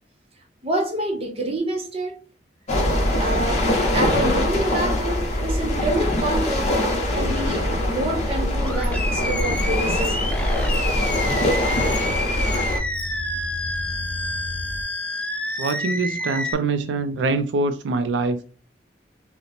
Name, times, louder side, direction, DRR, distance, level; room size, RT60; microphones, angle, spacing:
voice 1, 0.6-2.2 3.2-3.7 3.9-6.7 7.1-10.2, right 1 dB, 35° right, 0.7 m, -27 dB
sound 1, 2.7-12.8, left 1 dB, 40° left, 0.8 m, -23 dB
sound 2, 7.1-14.8, left 1 dB, 75° left, 0.5 m, -35 dB
Animal, 8.6-16.5, left 1 dB, 10° left, 0.3 m, -29 dB
voice 2, 15.6-18.4, right 3 dB, 85° right, 0.3 m, -24 dB
2.8 x 2.0 x 4.0 m
head